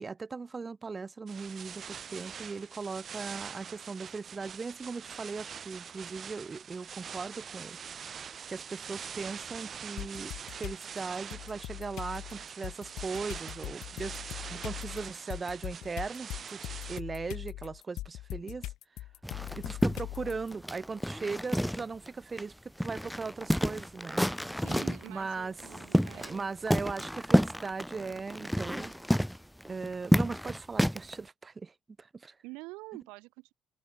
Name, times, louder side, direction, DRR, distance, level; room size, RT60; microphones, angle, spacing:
voice 1, 0.0-7.8 8.5-14.2 14.5-18.7 19.5-24.2 25.1-25.5 26.1-28.9 29.7-32.3, right 4 dB, 30° right, 1.1 m, -38 dB
sound 1, 1.3-17.0, right 7 dB, 50° right, 0.4 m, -44 dB
sound 2, 10.0-10.8 11.3-20.5, left 16 dB, 80° left, 0.4 m, -41 dB
sound 3, 19.2-22.1 22.4-22.5 22.8-25.1 25.6-26.4 26.7-31.1, equal, ahead, 0.7 m, -29 dB
voice 2, 24.6-26.5 32.4-33.5, right 24 dB, 90° right, 1.9 m, -47 dB
supercardioid pair, 75°, 0 cm